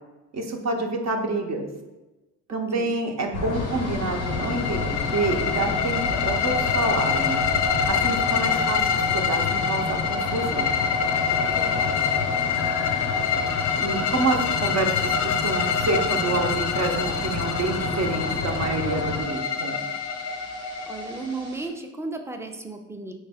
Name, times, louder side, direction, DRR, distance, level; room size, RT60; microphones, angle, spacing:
voice 1, 0.3-1.7 2.5-7.4 7.8-8.8 9.1-10.7 13.8-19.8, right 3 dB, 45° right, 3 dB, 0.8 m, -28 dB
voice 2, 2.5-2.9 11.5-12.1 20.9-23.1, right 3 dB, 5° right, 5 dB, 0.5 m, -35 dB
sound 1, 3.3-19.2, left 4 dB, 90° left, 0.7 m, -31 dB
sound 2, 3.5-21.7, right 2 dB, 75° right, 1.2 m, -46 dB
sound 3, 3.7-21.5, left 6 dB, 50° left, 0.5 m, -26 dB
4.2 x 3.2 x 3.5 m, 1.1 s
supercardioid pair, 60°, 36 cm